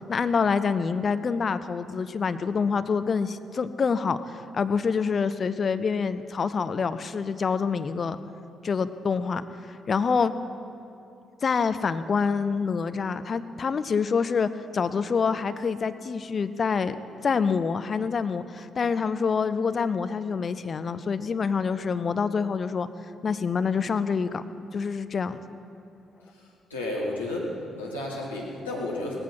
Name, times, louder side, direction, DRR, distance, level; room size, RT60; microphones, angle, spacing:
voice 1, 0.1-8.2 8.6-10.3 11.4-16.9 17.2-22.9 23.2-24.4 24.7-25.4, left 5 dB, 40° left, 11 dB, 0.7 m, -26 dB
voice 2, 26.7-29.2, left 1 dB, 85° left, -5 dB, 2.2 m, -32 dB
17.5 x 15.0 x 4.7 m, 2.6 s
figure-of-eight pair, 40°, 0 cm